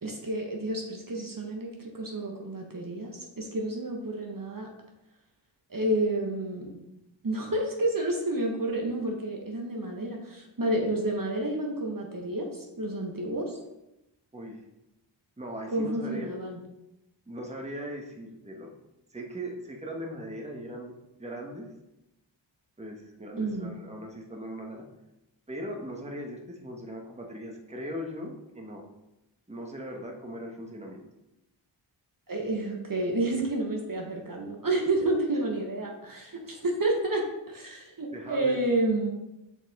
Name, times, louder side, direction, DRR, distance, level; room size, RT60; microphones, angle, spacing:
voice 1, 0.0-4.7 5.7-6.8 7.2-13.6 15.7-16.6 23.4-23.7 32.3-39.1, right 1 dB, 45° right, 0 dB, 1.2 m, -30 dB
voice 2, 15.4-16.3 17.3-18.7 19.1-20.9 21.2-21.7 22.8-24.8 25.5-28.8 29.5-31.0 38.1-38.6, equal, 15° right, 0 dB, 1.2 m, -39 dB
5.7 x 4.6 x 4.1 m, 0.93 s
cardioid pair, 45°, 47 cm